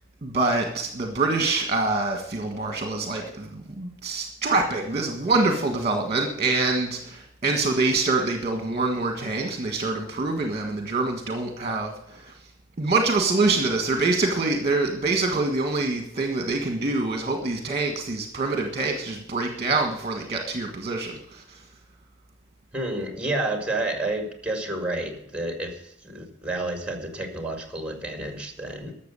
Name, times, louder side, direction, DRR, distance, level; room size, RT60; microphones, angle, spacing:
voice 1, 0.2-12.3 12.8-21.6, right 3 dB, 30° right, 4 dB, 1.6 m, -25 dB
voice 2, 22.7-28.9, right 2 dB, 5° right, 4 dB, 2.2 m, -30 dB
13.0 x 7.1 x 8.3 m, 0.74 s
head